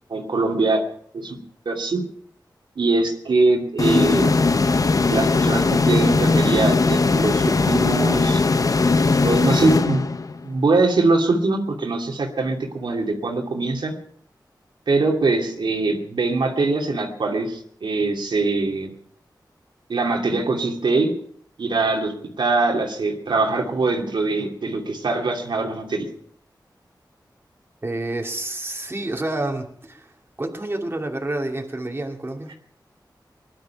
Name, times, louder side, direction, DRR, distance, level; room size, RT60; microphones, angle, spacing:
voice 1, 0.1-0.8 1.1-1.4 1.7-2.0 2.8-4.3 5.1-8.4 9.2-10.0 10.4-13.9 14.9-18.9 19.9-21.1 21.6-26.1, right 3 dB, 90° right, 1 dB, 2.6 m, -22 dB
sound 1, 3.8-10.5, left 3 dB, 50° left, 0.8 m, -19 dB
voice 2, 27.8-30.1 30.4-32.5, right 2 dB, 30° right, 1 dB, 2.5 m, -28 dB
20.0 x 11.5 x 5.8 m, 0.63 s
wide cardioid pair, 75°, 8 cm